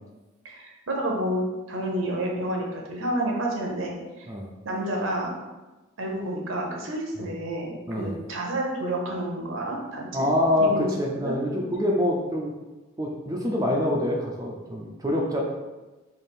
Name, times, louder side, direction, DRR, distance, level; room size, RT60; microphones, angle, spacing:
voice 1, 0.4-4.0 4.6-5.3 6.0-10.3 10.7-10.9 11.2-11.3, right 1 dB, 70° right, 0 dB, 0.7 m, -29 dB
voice 2, 10.1-12.5 13.0-15.4, left 1 dB, 15° right, -1 dB, 0.4 m, -25 dB
3.4 x 2.5 x 4.2 m, 1.2 s
head